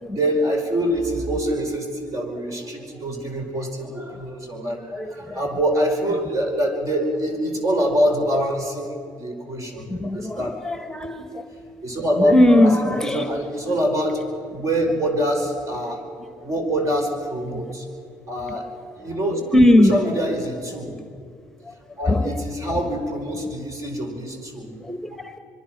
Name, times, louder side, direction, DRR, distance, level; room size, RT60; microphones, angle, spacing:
voice 1, 0.1-10.5 11.8-16.0 16.4-17.9 18.3-19.4 19.8-21.0 22.0-24.7, equal, 45° right, 4 dB, 5.0 m, -25 dB
voice 2, 4.9-5.4 9.9-11.4 12.2-13.3 17.6-17.7 18.4-18.5 19.5-20.3 21.6-21.7 22.0-22.4 24.8-25.4, left 1 dB, 5° left, 8 dB, 1.4 m, -20 dB
25.0 x 23.0 x 6.1 m, 2.4 s
supercardioid pair, 65°, 8 cm